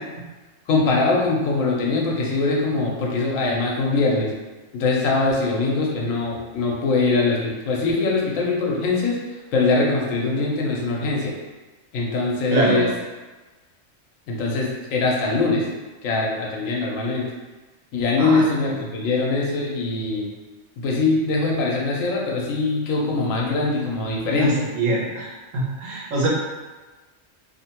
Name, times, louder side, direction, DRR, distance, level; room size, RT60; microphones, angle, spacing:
voice 1, 0.7-4.3 4.7-9.2 9.5-11.3 11.9-12.9 14.3-15.6 16.0-17.3 17.9-20.3 20.8-24.7, left 3 dB, 90° left, -2 dB, 1.0 m, -22 dB
voice 2, 12.5-12.9 18.2-18.4 24.3-25.3 25.5-26.3, right 2 dB, 80° right, -4 dB, 1.1 m, -23 dB
2.7 x 2.1 x 2.8 m, 1.2 s
omnidirectional pair, 1.3 m